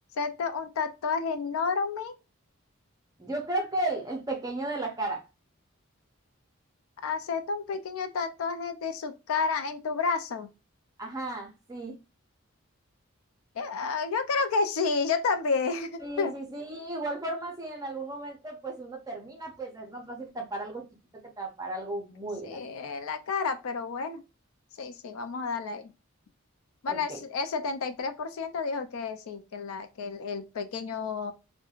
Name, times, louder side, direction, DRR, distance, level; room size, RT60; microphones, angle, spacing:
voice 1, 0.2-2.1 7.0-10.5 13.6-16.3 22.4-24.2 24.8-25.9 26.8-31.3, left 4 dB, 85° left, 0.4 m, -30 dB
voice 2, 3.2-5.2 11.0-12.0 16.0-20.9 21.4-22.7 26.9-27.2, right 2 dB, 15° right, 0.5 m, -34 dB
3.0 x 2.1 x 2.3 m
head